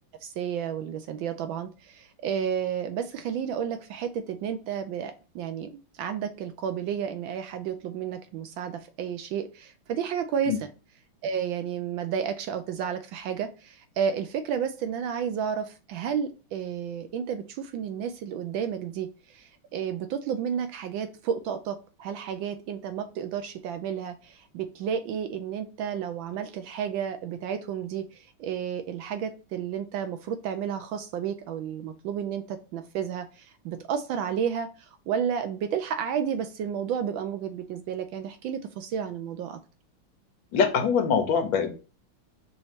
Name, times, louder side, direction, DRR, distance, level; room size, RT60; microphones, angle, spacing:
voice 1, 0.2-5.7 5.9-10.7 11.2-39.6, right 8 dB, 75° right, 8 dB, 1.2 m, -32 dB
voice 2, 40.5-41.7, left 6 dB, 65° left, 6 dB, 1.5 m, -23 dB
5.4 x 3.1 x 2.8 m, 0.34 s
omnidirectional pair, 2.4 m